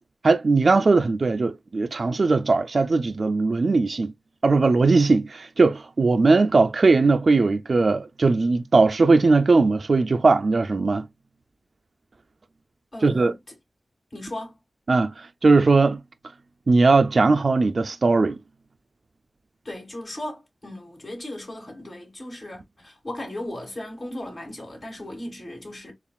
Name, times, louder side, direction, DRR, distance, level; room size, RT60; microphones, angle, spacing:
voice 1, 0.2-4.1 4.4-11.1 13.0-13.3 14.9-16.0 16.7-18.4, right 3 dB, 60° right, 0.3 m, -19 dB
voice 2, 12.9-13.5 14.1-14.6 19.6-25.9, left 1 dB, 50° left, 2.8 m, -36 dB
6.9 x 2.4 x 2.3 m
wide cardioid pair, 80°, 0 cm